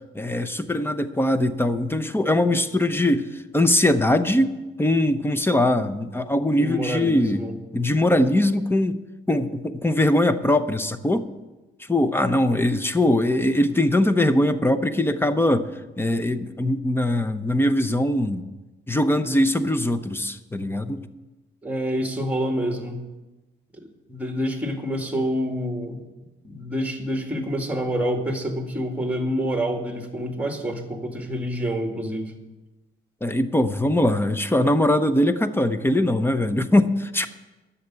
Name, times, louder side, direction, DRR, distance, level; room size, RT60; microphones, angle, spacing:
voice 1, 0.1-7.4 7.7-9.0 9.3-11.3 11.9-15.7 16.0-18.4 18.9-21.1 33.2-37.3, left 1 dB, 10° left, 12 dB, 0.8 m, -21 dB
voice 2, 6.6-7.6 21.6-23.0 24.1-26.0 26.4-32.3, equal, 5° right, 4 dB, 2.0 m, -27 dB
10.5 x 7.2 x 8.7 m, 1.1 s
cardioid pair, 90°, 20 cm